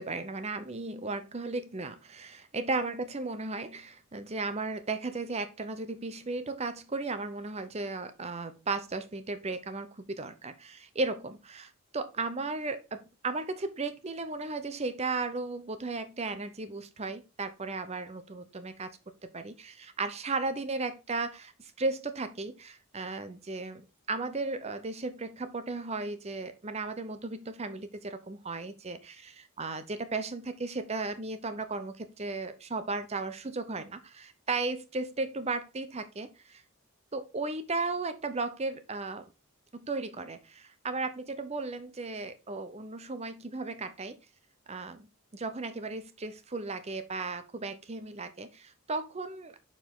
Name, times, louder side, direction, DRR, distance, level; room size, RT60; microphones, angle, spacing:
voice 1, 0.0-18.9 19.2-36.6 37.1-39.3 39.7-44.2 44.7-45.1 45.3-49.6, right 3 dB, 30° right, 0.7 m, -35 dB
6.9 x 4.6 x 3.7 m
head